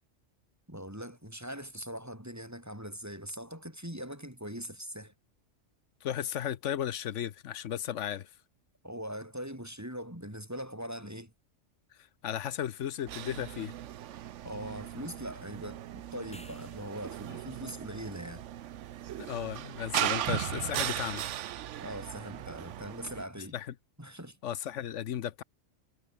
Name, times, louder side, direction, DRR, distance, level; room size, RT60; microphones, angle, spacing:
voice 1, 0.7-5.1 8.8-11.3 14.4-18.4 21.8-23.6 24.0-24.4, equal, 15° right, 4.9 m, -41 dB
voice 2, 6.0-8.3 12.2-13.7 19.2-21.3 23.5-23.7 24.4-25.4, left 10 dB, 80° left, 1.1 m, -35 dB
sound 1, 13.1-23.2, right 12 dB, 80° right, 1.0 m, -37 dB
sound 2, 16.1-17.1 21.8-21.9, equal, 5° left, 5.4 m, -54 dB
omnidirectional pair, 1.3 m